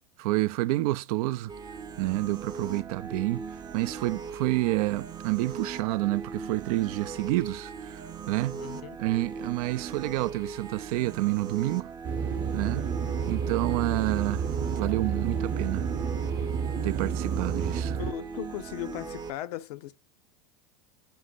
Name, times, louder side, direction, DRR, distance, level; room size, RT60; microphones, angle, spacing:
voice 1, 0.2-1.5 2.0-3.5 3.7-8.0 8.3-8.6 9.0-11.9 12.5-12.8 13.3-15.9 16.8-18.0, right 18 dB, 70° right, 0.4 m, -29 dB
sound 1, 1.5-19.3, right 5 dB, 20° right, 0.6 m, -39 dB
voice 2, 8.5-9.0 18.0-19.9, left 14 dB, 75° left, 0.6 m, -37 dB
sound 2, 12.0-18.1, right 6 dB, 45° right, 0.8 m, -30 dB
6.2 x 2.1 x 3.9 m
hypercardioid pair, 105°, 20 cm